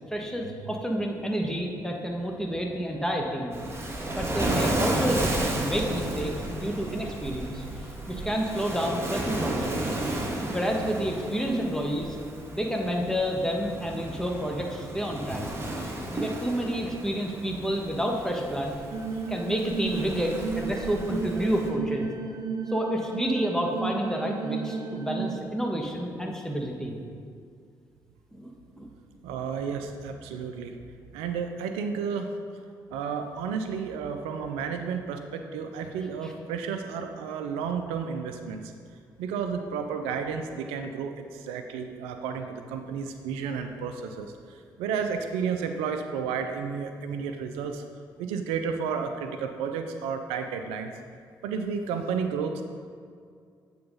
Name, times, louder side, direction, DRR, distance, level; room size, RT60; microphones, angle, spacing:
voice 1, 0.1-3.6 4.2-7.6 8.1-9.9 10.5-12.2 12.5-15.4 16.1-18.7 19.3-22.1 22.7-27.0 28.3-28.5 28.8-28.9 36.2-36.3, equal, 5° left, 0 dB, 1.5 m, -29 dB
Waves surf, 3.5-21.7, right 1 dB, 25° right, 1.6 m, -33 dB
sound 1, 18.9-25.4, right 5 dB, 40° right, 0.7 m, -33 dB
voice 2, 29.2-30.8 31.1-32.3 32.9-38.6 39.2-47.8 48.2-50.9 51.4-52.6, right 6 dB, 80° right, 6 dB, 0.4 m, -32 dB
8.6 x 4.0 x 5.4 m, 2.2 s
hypercardioid pair, 45°, 10 cm